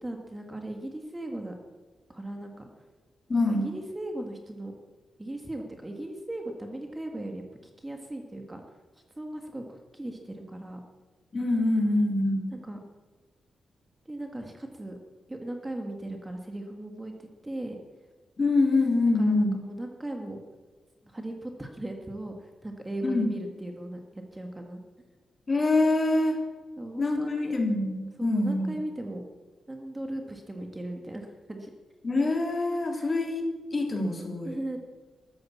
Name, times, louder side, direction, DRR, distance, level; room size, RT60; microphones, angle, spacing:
voice 1, 0.0-1.5 2.1-2.7 3.5-4.7 5.2-8.6 9.2-10.8 12.5-12.8 14.1-15.0 15.3-17.8 19.2-20.4 21.1-24.8 26.8-27.5 28.2-29.2 29.7-31.7 32.9-33.1 34.5-34.8, right 1 dB, 15° right, 3 dB, 1.6 m, -37 dB
voice 2, 3.3-3.7 11.3-12.5 18.4-19.6 23.0-23.3 25.5-26.4 27.0-28.7 32.0-33.4 33.7-34.5, left 2 dB, 35° left, 2 dB, 3.3 m, -25 dB
14.0 x 13.0 x 7.3 m, 1.3 s
wide cardioid pair, 125°, 0 cm